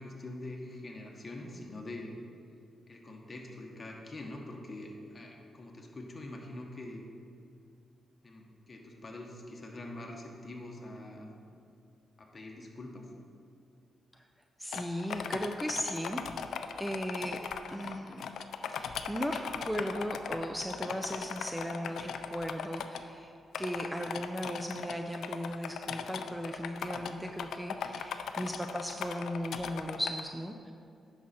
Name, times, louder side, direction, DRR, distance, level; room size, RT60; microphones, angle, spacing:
voice 1, 0.0-2.1 2.9-7.0 8.2-11.4 12.2-13.0, left 2 dB, 35° left, 0 dB, 1.5 m, -44 dB
voice 2, 14.6-16.2 16.8-17.4 17.7-18.3 18.7-30.7, equal, 5° right, 3 dB, 0.5 m, -37 dB
sound 1, 14.7-23.0 23.5-30.2, left 7 dB, 80° left, 0.4 m, -38 dB
10.0 x 6.2 x 4.4 m, 2.5 s
cardioid pair, 80°, 0 cm